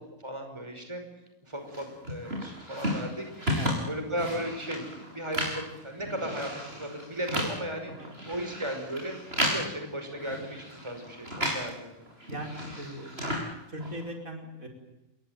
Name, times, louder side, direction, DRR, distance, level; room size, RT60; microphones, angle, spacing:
voice 1, 0.2-1.0 1.4-3.3 3.9-7.9 8.3-12.1, equal, 20° right, 5 dB, 5.4 m, -36 dB
sound 1, 1.7-11.8 12.0-14.1, equal, 45° right, 7.5 m, -34 dB
voice 2, 12.3-13.1 13.7-14.7, right 1 dB, 70° right, 2 dB, 5.6 m, -39 dB
29.5 x 21.5 x 9.0 m, 0.98 s
omnidirectional pair, 1.5 m